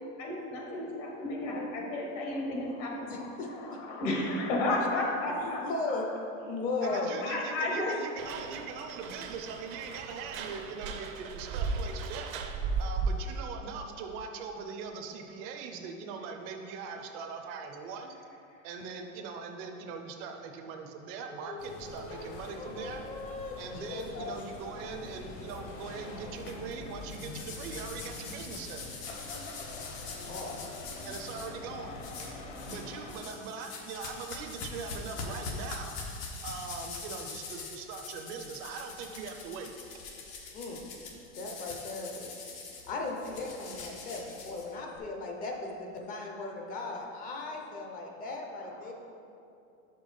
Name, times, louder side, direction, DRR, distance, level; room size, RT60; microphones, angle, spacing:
voice 1, 0.2-5.6 5.9-6.0 6.8-7.9 25.5-26.1 32.3-32.7 48.1-48.2 48.8-48.9, left 2 dB, 65° left, -1 dB, 1.7 m, -33 dB
voice 2, 3.1-3.8 5.2-6.1 6.5-7.2 21.3-24.3 30.2-30.6 40.5-40.8 41.3-42.3 42.9-48.9, left 3 dB, 20° left, 1 dB, 0.5 m, -37 dB
voice 3, 6.8-12.3 12.8-18.1 18.6-23.0 23.6-28.9 31.0-32.0 32.7-36.0 36.4-39.7, right 5 dB, 35° right, 5 dB, 0.5 m, -41 dB
sound 1, 8.2-13.4, right 4 dB, 80° right, 0.7 m, -35 dB
sound 2, 21.6-33.2, left 2 dB, 45° left, 1.0 m, -45 dB
sound 3, 27.1-31.5 32.0-32.8 33.1-45.0, left 4 dB, 80° left, 1.4 m, -43 dB
5.6 x 5.3 x 5.3 m, 2.7 s
supercardioid pair, 155°, 41 cm